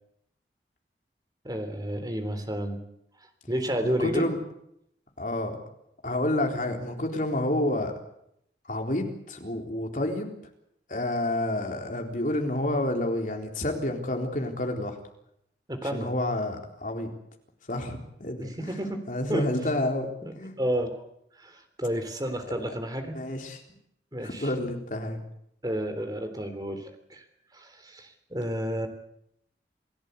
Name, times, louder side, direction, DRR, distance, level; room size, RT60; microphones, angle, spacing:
voice 1, 1.4-2.8 3.5-4.3 15.7-16.1 18.4-19.0 19.3-19.5 20.2-20.3 20.6-21.0 21.4-23.2 24.1-24.5 25.6-27.2 27.5-28.9, equal, 20° right, 7 dB, 3.5 m, -31 dB
voice 2, 3.8-4.4 5.2-5.6 6.0-7.9 8.6-10.3 10.9-15.0 15.8-17.1 17.7-18.7 19.1-20.1 20.4-20.5 22.5-22.7 23.1-23.6 24.2-25.2, left 1 dB, 45° left, 3 dB, 3.9 m, -29 dB
28.5 x 17.0 x 8.2 m, 0.76 s
head